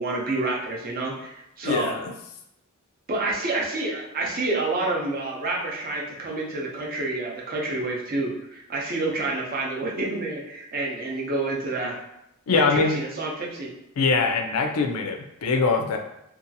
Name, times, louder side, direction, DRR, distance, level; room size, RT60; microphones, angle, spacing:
voice 1, 0.0-2.0 3.1-12.0 12.5-13.7, right 2 dB, 45° right, -2 dB, 0.6 m, -28 dB
voice 2, 1.6-2.1 12.5-13.0 14.0-16.0, left 4 dB, 85° left, 4 dB, 0.4 m, -23 dB
2.7 x 2.3 x 2.6 m, 0.82 s
head